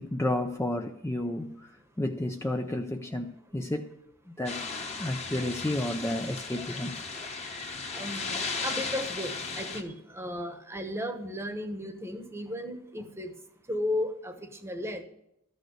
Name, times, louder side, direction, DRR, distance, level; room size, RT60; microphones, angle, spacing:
voice 1, 0.0-1.7 2.0-3.9 4.3-4.7 5.0-6.9, left 1 dB, 10° left, 0.5 m, -31 dB
sound 1, 4.5-9.8, left 4 dB, 30° left, 1.3 m, -36 dB
voice 2, 7.9-13.3 13.7-14.3 14.6-15.0, left 1 dB, 10° right, 1.1 m, -34 dB
13.5 x 6.4 x 8.0 m
head